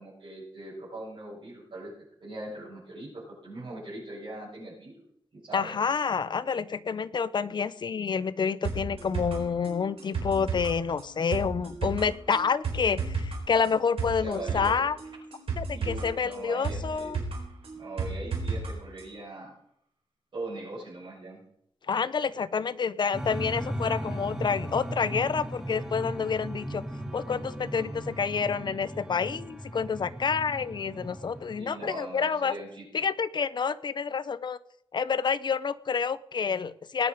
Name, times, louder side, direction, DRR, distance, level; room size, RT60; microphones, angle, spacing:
voice 1, 0.0-1.9 2.2-4.9 5.3-5.8 14.1-14.7 15.7-17.1 17.8-19.5 20.3-21.4 31.5-32.8, right 2 dB, 55° right, -9 dB, 6.9 m, -40 dB
voice 2, 5.5-15.0 15.6-17.2 21.9-26.8 27.1-32.6 32.9-34.6 34.9-37.1, left 6 dB, 50° left, 16 dB, 0.5 m, -28 dB
sound 1, 8.6-18.7 19.0-19.1, right 4 dB, 80° right, 4.2 m, -33 dB
sound 2, 23.1-31.6, equal, 5° right, 1.7 m, -37 dB
19.0 x 9.5 x 5.0 m, 0.75 s
wide cardioid pair, 175°, 9 cm